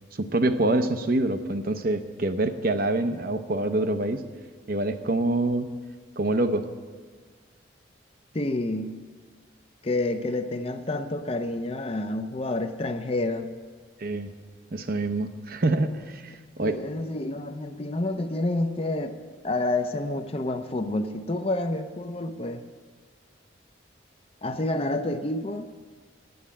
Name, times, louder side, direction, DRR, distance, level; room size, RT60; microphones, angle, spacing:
voice 1, 0.1-4.2 4.7-5.7 6.2-6.6 14.0-14.3 14.7-16.8, right 2 dB, 50° right, 8 dB, 0.7 m, -26 dB
voice 2, 8.3-9.0 9.8-13.5 16.6-19.2 19.4-22.6 24.4-25.7, left 2 dB, 30° left, 8 dB, 0.6 m, -29 dB
9.4 x 8.0 x 8.5 m, 1.5 s
head